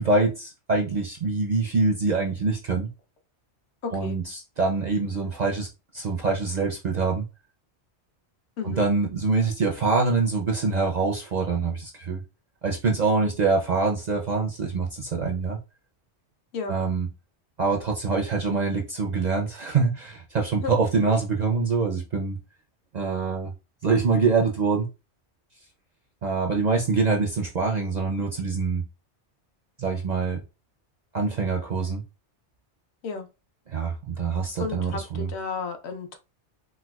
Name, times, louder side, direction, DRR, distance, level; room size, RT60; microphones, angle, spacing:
voice 1, 0.0-2.9 3.9-7.2 8.6-12.2 12.6-15.6 16.7-17.1 17.6-22.4 22.9-23.5 23.8-24.9 26.2-28.8 29.8-30.4 31.1-32.0 33.7-35.3, right 4 dB, 55° right, 0.5 m, -25 dB
voice 2, 3.8-4.2 8.6-8.8 16.5-16.7 20.6-20.7 33.0-33.3 34.6-36.2, left 5 dB, 70° left, 0.9 m, -32 dB
4.3 x 2.2 x 2.3 m
omnidirectional pair, 1.2 m